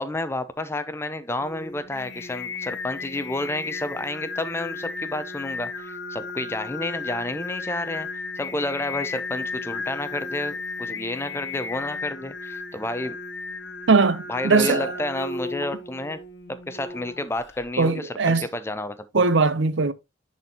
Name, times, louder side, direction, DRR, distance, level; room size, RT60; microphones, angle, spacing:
voice 1, 0.0-13.2 14.3-16.2 16.7-19.2, left 2 dB, 15° left, 0.5 m, -30 dB
Singing, 1.4-17.7, left 4 dB, 60° left, 0.9 m, -35 dB
voice 2, 13.9-14.9 17.8-18.5 19.1-19.9, right 4 dB, 65° right, 0.6 m, -20 dB
9.9 x 4.2 x 2.8 m
head